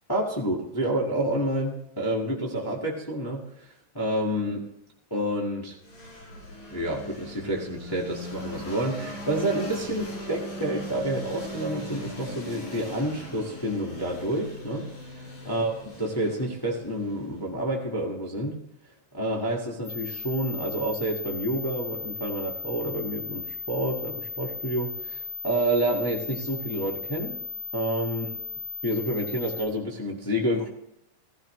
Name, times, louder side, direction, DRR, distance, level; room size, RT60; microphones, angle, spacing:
voice 1, 0.1-4.7 5.1-5.8 6.7-14.9 15.4-18.6 19.1-27.4 27.7-28.3 28.8-30.7, right 1 dB, 30° left, -2 dB, 0.4 m, -29 dB
sound 1, 5.8-17.6, left 1 dB, 85° left, 8.0 m, -40 dB
sound 2, 19.9-29.7, left 4 dB, 50° left, 6.0 m, -36 dB
15.5 x 14.5 x 3.2 m, 0.79 s
omnidirectional pair, 3.9 m